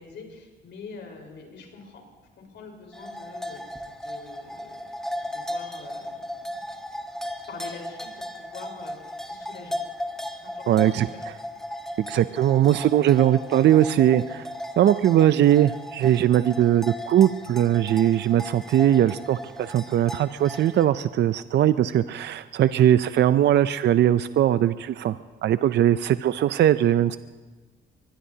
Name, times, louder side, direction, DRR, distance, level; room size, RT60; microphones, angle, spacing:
voice 1, 0.0-2.0 2.3-3.6 4.0-4.9 5.2-6.2 6.5-6.6 7.5-9.7 10.4-11.3, left 4 dB, 70° left, 1 dB, 4.4 m, -44 dB
sound 1, 2.9-20.9, left 1 dB, ahead, 1.4 m, -36 dB
voice 2, 10.7-11.1 12.0-14.5 14.8-27.2, right 11 dB, 60° right, 13 dB, 0.5 m, -20 dB
24.0 x 20.5 x 2.8 m, 1.3 s
cardioid pair, 90°, 20 cm